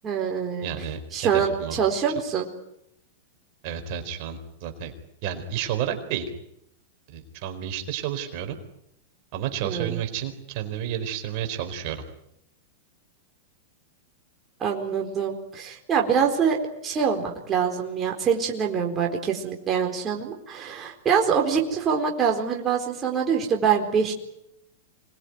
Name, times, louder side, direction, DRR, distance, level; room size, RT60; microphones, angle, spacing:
voice 1, 0.0-0.7 1.1-2.5 9.6-10.0 14.6-24.1, right 7 dB, 25° right, 1 dB, 4.3 m, -25 dB
voice 2, 0.6-1.8 3.6-4.9 5.2-6.2 7.1-8.6 9.3-12.0, right 9 dB, 50° right, 6 dB, 4.3 m, -31 dB
26.0 x 21.0 x 9.6 m, 0.79 s
hypercardioid pair, 130°, 0 cm